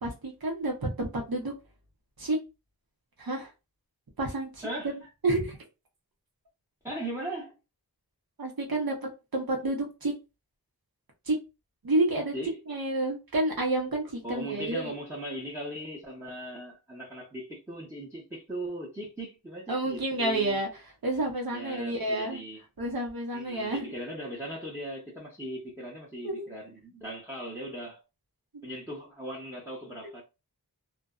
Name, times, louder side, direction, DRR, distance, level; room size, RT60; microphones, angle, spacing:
voice 1, 0.0-1.5 2.2-2.4 3.2-3.5 4.2-4.9 5.2-5.6 8.4-10.1 11.3-11.4 11.8-12.3 12.7-14.9 19.7-20.7 21.0-22.4 22.8-23.9 26.2-26.4 28.5-28.7, right 2 dB, 65° right, 0.9 m, -29 dB
voice 2, 6.8-7.6 12.3-12.5 14.2-20.6 21.5-22.6 23.3-28.0 28.6-30.2, equal, 5° right, 0.9 m, -38 dB
2.5 x 2.2 x 2.3 m
wide cardioid pair, 40°, 39 cm